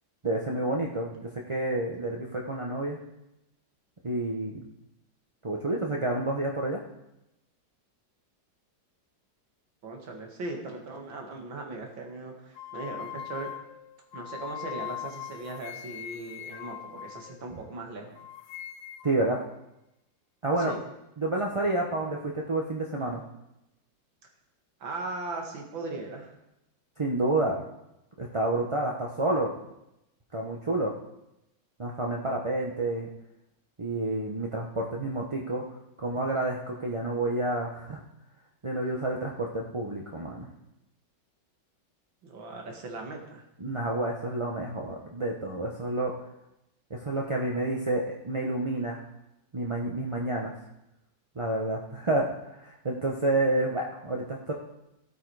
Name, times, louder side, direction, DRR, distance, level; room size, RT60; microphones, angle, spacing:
voice 1, 0.2-3.0 4.0-4.6 5.4-6.8 17.5-17.6 19.0-19.4 20.4-20.7 21.2-23.2 27.0-27.6 28.2-29.5 30.3-30.9 31.8-33.1 33.8-35.6 36.0-38.0 38.6-40.5 43.6-46.1 46.9-49.0 49.5-50.5 51.4-54.5, right 2 dB, 30° right, -1 dB, 0.6 m, -29 dB
voice 2, 9.8-13.5 14.1-18.1 20.6-20.8 24.8-26.3 42.2-43.4, right 3 dB, 85° right, 2 dB, 2.7 m, -38 dB
sound 1, 12.6-17.8 18.2-19.2, left 10 dB, 85° left, 1.4 m, -41 dB
15.5 x 8.3 x 4.8 m, 0.88 s
omnidirectional pair, 2.1 m